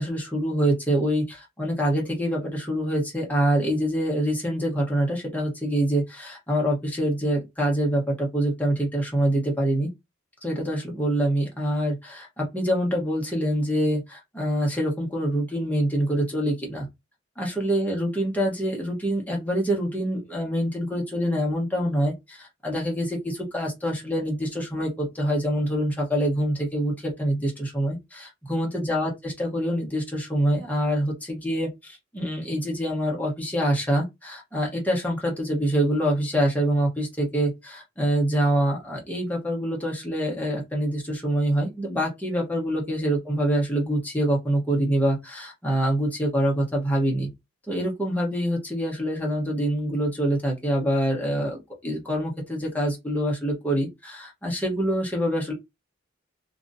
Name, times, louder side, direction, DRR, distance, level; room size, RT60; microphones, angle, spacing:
voice 1, 0.0-9.9 10.4-16.9 17.4-47.3 47.7-55.5, right 1 dB, 10° left, 1.1 m, -25 dB
2.9 x 2.5 x 2.6 m
head